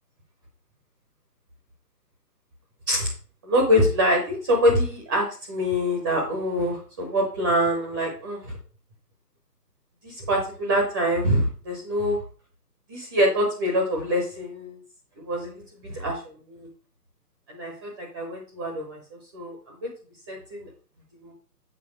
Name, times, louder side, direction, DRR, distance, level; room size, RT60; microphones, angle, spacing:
voice 1, 3.4-8.6 10.0-12.2 12.9-14.8 15.2-15.5 15.8-16.2 16.5-16.7 17.5-19.0 19.3-19.6 20.3-20.7 21.2-21.3, equal, 15° right, 0 dB, 0.8 m, -24 dB
7.7 x 5.3 x 4.6 m, 0.38 s
figure-of-eight pair, 150°, 49 cm